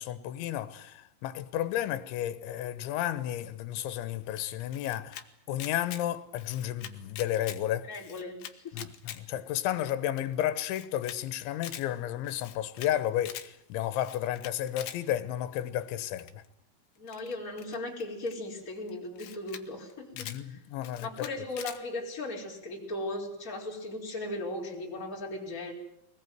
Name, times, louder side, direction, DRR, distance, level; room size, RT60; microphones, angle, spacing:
voice 1, 0.0-5.2 5.5-7.9 8.7-16.4 20.2-21.3, left 12 dB, 85° left, 3.5 m, -32 dB
Camera, 4.4-5.2 5.5-6.0 6.3-7.6 7.9-9.2 9.5-9.6 9.9-10.0 10.2-10.3 10.6-11.2 11.5-11.8 12.2-12.9 13.2-13.5 13.9-15.0 16.2-16.5 17.1-18.3 18.9-19.0 19.2-19.6 19.9-20.4 20.8-21.8, left 11 dB, 65° left, 2.4 m, -43 dB
voice 2, 7.9-8.8 17.0-20.6 21.0-25.7, left 2 dB, 20° left, 5.0 m, -37 dB
23.0 x 20.0 x 9.5 m
omnidirectional pair, 5.3 m